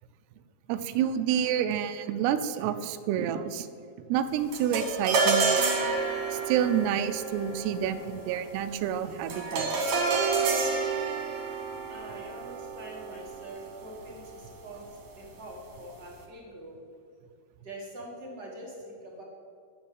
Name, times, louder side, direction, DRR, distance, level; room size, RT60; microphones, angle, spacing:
voice 1, 0.7-3.7 4.1-5.6 6.3-10.0, right 9 dB, 80° right, 9 dB, 2.6 m, -29 dB
sound 1, 4.5-14.0, right 4 dB, 55° right, 3.0 m, -29 dB
voice 2, 11.9-16.8 17.6-19.2, right 1 dB, 35° right, -3 dB, 2.0 m, -44 dB
10.5 x 7.3 x 7.9 m, 2.3 s
omnidirectional pair, 4.8 m